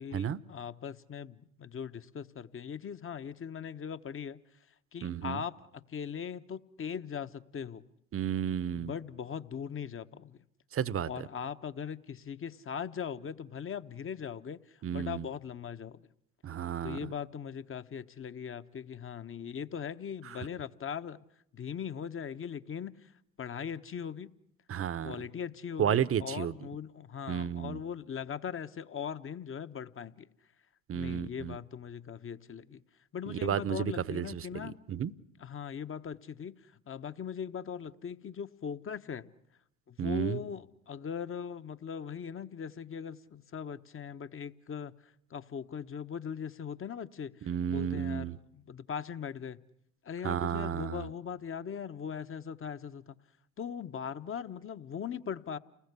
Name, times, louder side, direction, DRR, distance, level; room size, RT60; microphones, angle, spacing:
voice 1, 0.0-4.4 4.9-7.8 8.7-10.4 11.1-16.1 16.8-21.2 21.5-23.1 23.4-24.3 25.0-30.3 30.9-32.8 33.1-34.8 35.4-39.3 39.9-49.6 50.0-53.2 53.6-55.6, left 7 dB, 30° left, 1.2 m, -40 dB
voice 2, 5.0-5.4 8.1-8.9 10.7-11.1 14.8-15.2 16.4-17.1 24.7-25.2 25.8-26.5 27.3-27.8 30.9-31.6 33.3-34.6 34.9-35.1 40.0-40.4 47.5-48.4 50.2-51.1, right 9 dB, 35° right, 1.0 m, -32 dB
29.5 x 20.5 x 8.3 m
hypercardioid pair, 65°, 40 cm